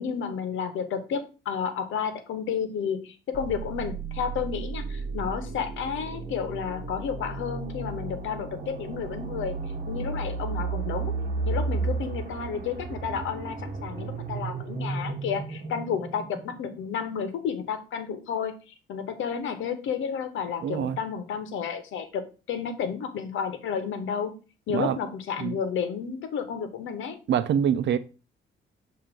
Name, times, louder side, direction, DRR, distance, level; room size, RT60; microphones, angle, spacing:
voice 1, 0.0-9.5 9.9-11.1 11.4-18.5 18.9-24.3 24.7-27.2, left 7 dB, 80° left, 1.1 m, -31 dB
sound 1, 3.3-17.1, right 4 dB, 40° right, 1.3 m, -33 dB
voice 2, 20.6-21.0 24.7-25.0 25.4-25.6 27.3-28.0, right 8 dB, 65° right, 0.6 m, -25 dB
7.5 x 2.8 x 5.0 m
cardioid pair, 90°, 20 cm